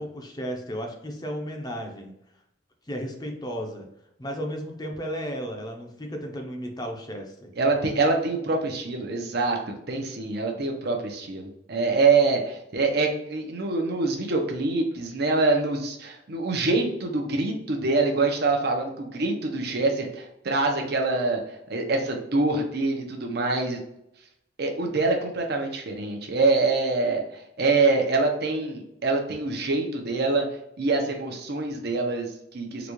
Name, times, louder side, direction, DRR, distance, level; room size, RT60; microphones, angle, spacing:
voice 1, 0.0-2.1 2.9-3.9 4.2-7.5, equal, 20° left, 2 dB, 0.6 m, -34 dB
voice 2, 7.6-23.8 24.6-30.5 30.8-32.9, right 3 dB, 60° right, 2 dB, 0.7 m, -25 dB
3.9 x 2.3 x 3.0 m, 0.79 s
head